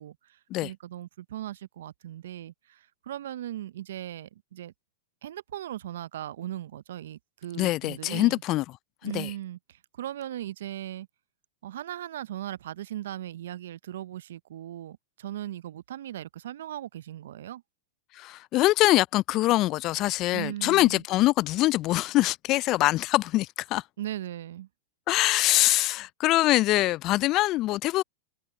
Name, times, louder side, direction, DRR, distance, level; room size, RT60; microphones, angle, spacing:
voice 1, 0.0-4.7 5.2-8.4 9.0-11.1 11.6-17.6 20.3-21.0 24.0-24.7, right 12 dB, 70° right, 0.6 m, -38 dB
voice 2, 7.6-8.6 9.0-9.3 18.1-23.8 25.1-28.0, left 17 dB, 40° left, 0.3 m, -24 dB
hypercardioid pair, 105°, 0 cm